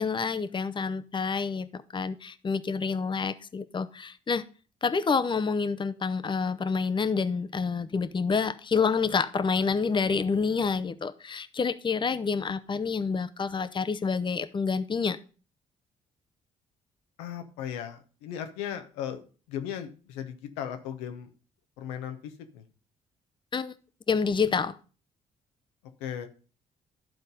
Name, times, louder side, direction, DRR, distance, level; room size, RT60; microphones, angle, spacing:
voice 1, 0.0-4.4 4.8-15.2 23.5-23.7 24.1-24.7, left 5 dB, 30° left, 0.7 m, -28 dB
voice 2, 17.2-19.2 19.5-21.3 21.8-22.6 26.0-26.3, left 9 dB, 85° left, 0.8 m, -37 dB
12.0 x 4.0 x 5.2 m
hypercardioid pair, 50°, 17 cm